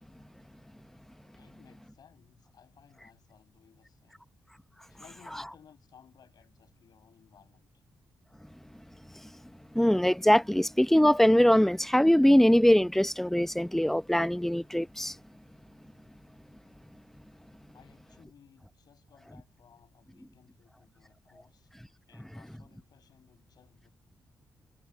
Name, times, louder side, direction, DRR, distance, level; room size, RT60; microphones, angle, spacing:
voice 1, 1.2-4.2 4.9-7.8 17.7-21.7 22.1-23.9, left 8 dB, 70° left, 6.2 m, -60 dB
voice 2, 9.7-15.2, equal, 5° left, 0.9 m, -22 dB
supercardioid pair, 50°, 7 cm